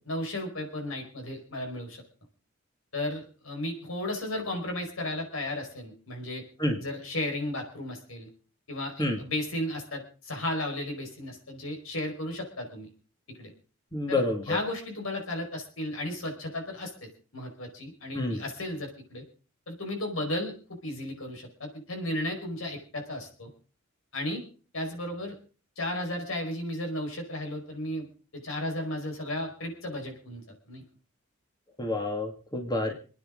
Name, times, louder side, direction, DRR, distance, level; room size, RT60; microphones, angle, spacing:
voice 1, 0.1-2.0 2.9-6.4 6.8-8.3 8.7-12.9 13.3-13.5 14.1-14.2 14.4-19.2 19.7-23.5 24.1-24.4 24.7-25.4 25.8-28.1 28.3-30.8, left 1 dB, 85° left, 3 dB, 4.8 m, -34 dB
voice 2, 13.9-14.6 18.1-18.4 31.8-32.9, left 2 dB, 20° left, 3 dB, 2.1 m, -28 dB
27.5 x 9.7 x 3.8 m, 0.37 s
head